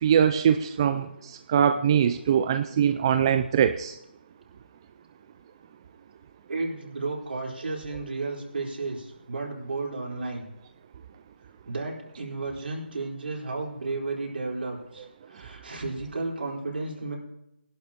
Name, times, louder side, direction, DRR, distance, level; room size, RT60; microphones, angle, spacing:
voice 1, 0.0-4.0, right 8 dB, 25° right, 8 dB, 0.4 m, -22 dB
voice 2, 6.5-10.5 11.7-17.2, right 3 dB, 70° right, -2 dB, 4.1 m, -33 dB
19.5 x 11.5 x 2.9 m, 0.86 s
figure-of-eight pair, 160°, 6 cm